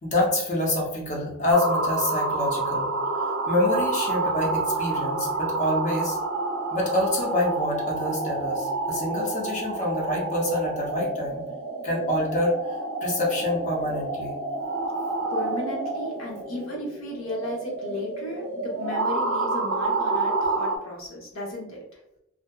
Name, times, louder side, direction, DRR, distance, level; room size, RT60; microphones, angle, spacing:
voice 1, 0.0-3.0 3.5-6.2 6.7-11.4 11.8-12.5 13.0-14.3, left 1 dB, 35° left, -2 dB, 0.7 m, -26 dB
sound 1, 1.5-20.8, right 3 dB, 80° right, 0.4 m, -29 dB
voice 2, 15.3-22.0, left 1 dB, 80° left, -3 dB, 0.8 m, -34 dB
2.6 x 2.2 x 2.2 m, 0.84 s
head